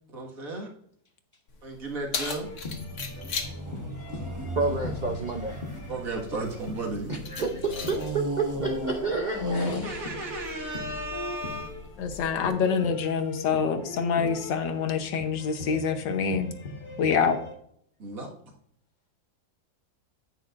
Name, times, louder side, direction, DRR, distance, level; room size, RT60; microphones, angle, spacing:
voice 1, 0.1-0.7 1.6-2.5 3.1-3.4 5.7-8.0 9.8-11.9 18.0-18.3, right 2 dB, 50° right, 0 dB, 2.2 m, -35 dB
Keys jangling, 1.5-12.5, left 5 dB, 60° left, 1.7 m, -41 dB
sound 1, 2.4-17.5, left 2 dB, 35° left, 1.2 m, -41 dB
sound 2, 2.4-7.1 7.9-10.4 11.1-11.2, right 1 dB, 15° right, 0.6 m, -36 dB
voice 2, 4.6-5.6 7.3-10.0, right 4 dB, 75° right, 3 dB, 0.4 m, -30 dB
voice 3, 9.4-9.9 12.0-16.5 17.0-17.4, left 6 dB, 85° left, 7 dB, 1.7 m, -26 dB
9.7 x 8.9 x 2.5 m, 0.65 s
omnidirectional pair, 1.9 m